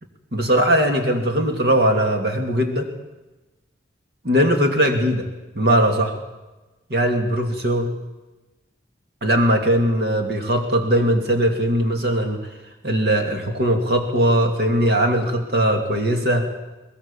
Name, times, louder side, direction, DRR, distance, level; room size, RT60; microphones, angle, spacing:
voice 1, 0.3-2.9 4.2-5.3 5.5-6.1 6.9-7.9 9.2-12.4 12.8-16.5, right 1 dB, 60° right, 4 dB, 2.7 m, -20 dB
23.5 x 19.5 x 7.3 m, 1.1 s
head